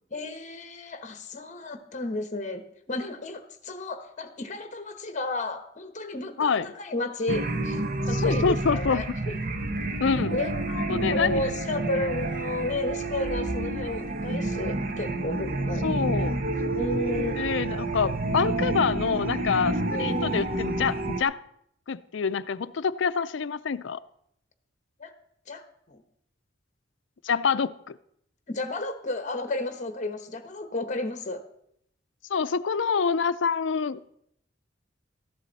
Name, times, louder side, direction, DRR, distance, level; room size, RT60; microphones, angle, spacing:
voice 1, 0.1-2.6 2.9-7.8 8.1-9.4 10.3-15.9 16.8-17.6 19.9-20.4 25.0-25.1 25.5-26.0 28.5-31.4, left 2 dB, 40° left, 8 dB, 1.2 m, -33 dB
sound 1, 7.3-21.2, right 2 dB, 45° right, 0.9 m, -29 dB
voice 2, 8.1-9.0 10.0-10.3 10.9-11.4 15.8-16.4 17.3-21.4 21.9-24.0 27.2-28.0 32.3-34.0, left 5 dB, 70° left, 16 dB, 0.5 m, -26 dB
14.0 x 11.5 x 4.1 m, 0.73 s
head